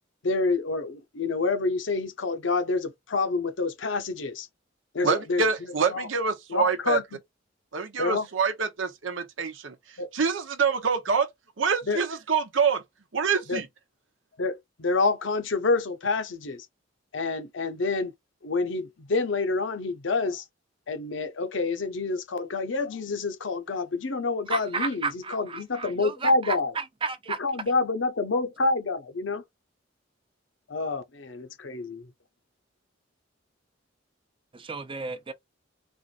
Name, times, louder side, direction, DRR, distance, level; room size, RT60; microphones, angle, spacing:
voice 1, 0.2-4.5 4.9-5.4 5.9-6.1 6.5-7.0 8.0-8.3 10.0-10.1 11.9-12.0 13.5-13.6 14.4-16.7 17.1-18.1 18.4-20.4 20.9-26.7 27.4-29.4 30.7-32.1, left 3 dB, 70° left, 0.7 m, -28 dB
voice 2, 5.0-7.0 7.7-9.7 10.1-11.3 11.6-12.8 13.1-13.7, right 5 dB, 75° right, 0.8 m, -26 dB
voice 3, 24.5-27.4 34.5-35.3, right 4 dB, 25° right, 0.6 m, -32 dB
4.3 x 2.5 x 2.4 m
head